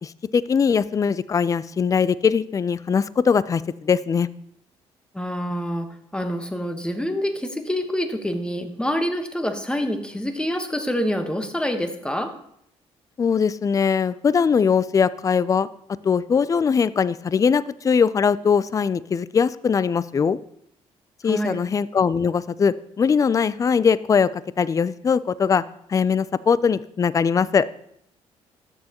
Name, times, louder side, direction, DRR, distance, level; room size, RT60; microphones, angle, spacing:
voice 1, 0.0-4.3 13.2-15.7 16.0-20.4 21.2-25.6 25.9-27.7, left 6 dB, 30° left, 18 dB, 0.3 m, -21 dB
voice 2, 5.1-12.3 21.2-21.6, equal, 10° left, 6 dB, 1.1 m, -26 dB
13.0 x 7.1 x 2.9 m, 0.72 s
cardioid pair, 85°, 12 cm